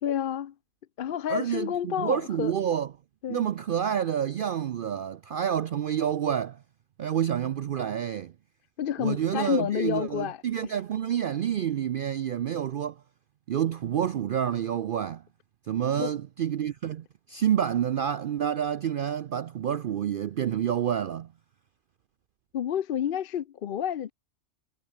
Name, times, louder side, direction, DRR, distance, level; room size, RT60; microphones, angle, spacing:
voice 1, 0.0-0.5 1.0-2.5 3.2-3.5 8.8-10.7 16.0-16.1 22.5-24.1, left 9 dB, 55° left, 0.7 m, -29 dB
voice 2, 1.3-2.9 3.3-6.6 7.0-8.3 9.0-13.0 13.5-15.2 15.7-21.3, right 9 dB, 60° right, 0.6 m, -28 dB
omnidirectional pair, 1.3 m